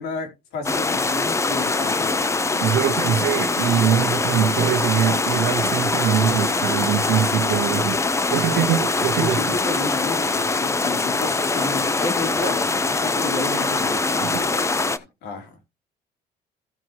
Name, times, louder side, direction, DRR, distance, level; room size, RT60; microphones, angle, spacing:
voice 1, 0.0-2.3 2.8-3.0 8.5-8.7 9.1-14.0 15.2-15.6, left 4 dB, 85° left, 3.1 m, -32 dB
sound 1, 0.6-15.0, left 3 dB, 15° left, 0.7 m, -23 dB
voice 2, 2.6-8.0 8.3-9.4 14.2-14.5, right 10 dB, 75° right, 0.9 m, -22 dB
sound 2, 9.6-15.0, left 4 dB, 55° left, 5.7 m, -43 dB
15.0 x 6.0 x 2.9 m
cardioid pair, 110°, 17 cm